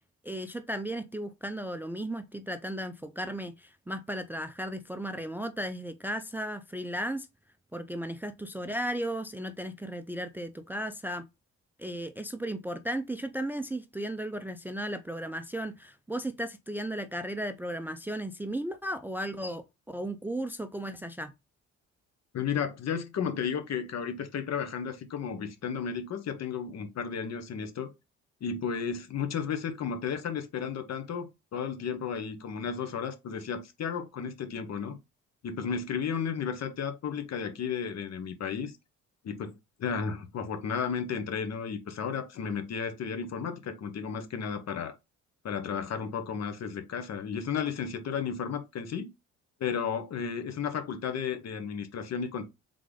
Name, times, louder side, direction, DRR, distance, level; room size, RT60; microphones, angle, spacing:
voice 1, 0.2-7.3 7.7-11.3 11.8-21.3, right 1 dB, 5° right, 0.4 m, -35 dB
voice 2, 22.3-27.9 28.4-35.0 35.4-38.7 39.2-44.9 45.4-49.1 49.6-52.4, left 6 dB, 60° left, 1.0 m, -33 dB
3.8 x 3.3 x 3.7 m
cardioid pair, 90°, 30 cm